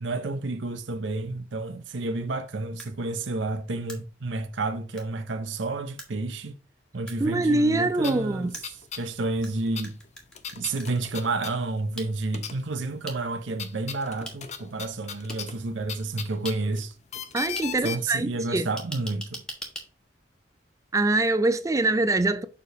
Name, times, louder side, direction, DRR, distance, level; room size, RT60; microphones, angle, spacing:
voice 1, 0.0-6.5 6.9-8.5 8.9-10.0 10.5-16.9 17.8-19.4, right 3 dB, 80° right, 0.7 m, -30 dB
sound 1, 2.8-2.9 3.9-4.0 5.0-5.1 6.0-6.1 7.1-7.2 8.5-9.5 9.8-11.0 12.0-12.1 13.1-13.2 14.2-14.4 15.3-15.4 16.4-16.5 17.6-17.7 18.8-19.8, equal, 5° left, 1.2 m, -39 dB
voice 2, 7.2-8.5 17.3-18.7 20.9-22.4, right 2 dB, 15° right, 0.3 m, -24 dB
sound 2, 7.6-7.7 8.0-9.1 9.3-12.0 12.3-12.9 13.2-18.0, left 7 dB, 35° left, 0.6 m, -38 dB
6.8 x 3.3 x 5.2 m
head